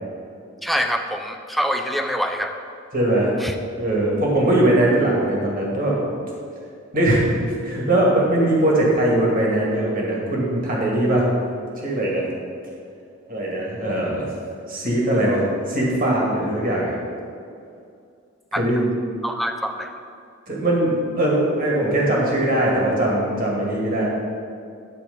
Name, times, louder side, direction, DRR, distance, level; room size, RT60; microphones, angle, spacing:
voice 1, 0.6-2.6 3.4-3.6 18.5-18.6 19.2-19.9, equal, ahead, 4 dB, 0.5 m, -25 dB
voice 2, 2.9-3.3 3.8-6.0 6.9-11.3 11.8-12.3 13.3-14.3 14.7-16.9 18.6-18.9 20.5-24.1, right 1 dB, 45° right, -4 dB, 2.1 m, -20 dB
10.0 x 4.6 x 6.7 m, 2.4 s
head